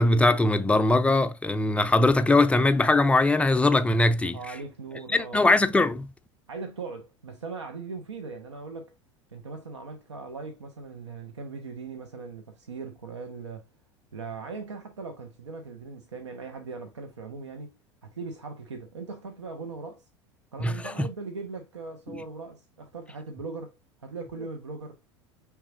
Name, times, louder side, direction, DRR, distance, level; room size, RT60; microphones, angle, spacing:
voice 1, 0.0-4.4 5.1-6.1 20.6-21.1, left 2 dB, 10° left, 0.4 m, -21 dB
voice 2, 4.3-5.4 6.5-8.9 9.3-13.7 14.1-17.7 18.0-20.0 20.5-23.7 24.0-25.0, right 4 dB, 80° right, 0.7 m, -39 dB
5.8 x 3.5 x 2.5 m
figure-of-eight pair, 75°, 15 cm